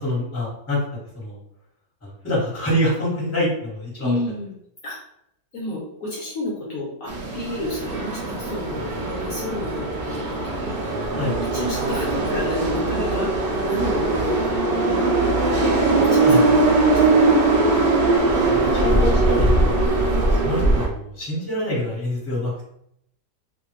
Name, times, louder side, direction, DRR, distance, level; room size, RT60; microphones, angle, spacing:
voice 1, 0.0-0.8 1.1-1.4 2.0-4.2 11.1-11.4 16.2-16.4 18.3-19.8 20.2-22.5, left 1 dB, 10° left, -7 dB, 1.2 m, -26 dB
voice 2, 4.0-4.5 4.8-5.0 5.5-10.8 11.5-15.1 15.5-17.8, left 1 dB, 65° left, -5 dB, 1.1 m, -31 dB
sound 1, 7.1-20.9, right 2 dB, 85° right, 0.5 m, -20 dB
2.7 x 2.5 x 3.1 m, 0.74 s
omnidirectional pair, 1.8 m